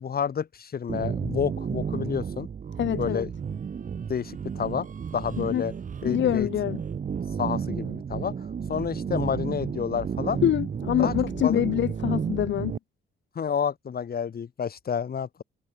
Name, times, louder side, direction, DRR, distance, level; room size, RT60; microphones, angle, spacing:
voice 1, 0.0-2.5 3.0-3.3 4.1-4.9 5.1-5.7 6.0-6.5 7.4-10.4 11.0-11.6 13.3-15.4, left 7 dB, 50° left, 7.7 m, -29 dB
sound 1, 0.9-12.8, right 7 dB, 40° right, 1.5 m, -32 dB
voice 2, 2.8-3.3 5.4-5.6 6.0-6.8 10.4-12.8, left 11 dB, 65° left, 2.0 m, -25 dB
cardioid pair, 90°, 20 cm